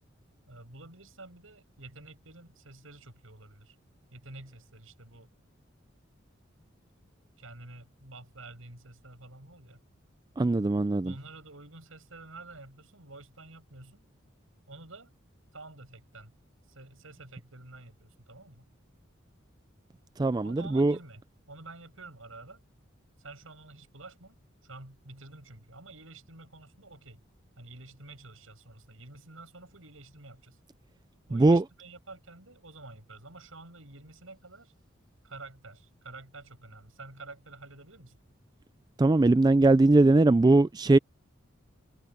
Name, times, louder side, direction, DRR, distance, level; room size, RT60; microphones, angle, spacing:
voice 1, 0.5-3.8 4.1-5.3 7.4-9.8 11.0-14.0 14.7-15.1 15.5-16.3 16.7-18.7 20.4-21.2 21.5-22.6 23.2-24.4 24.6-27.2 27.6-30.6 31.3-34.7 35.2-38.2, right 2 dB, 80° right, 6.7 m, -49 dB
voice 2, 10.4-11.1 20.2-20.9 31.3-31.6 39.0-41.0, right 2 dB, 20° right, 0.3 m, -21 dB
head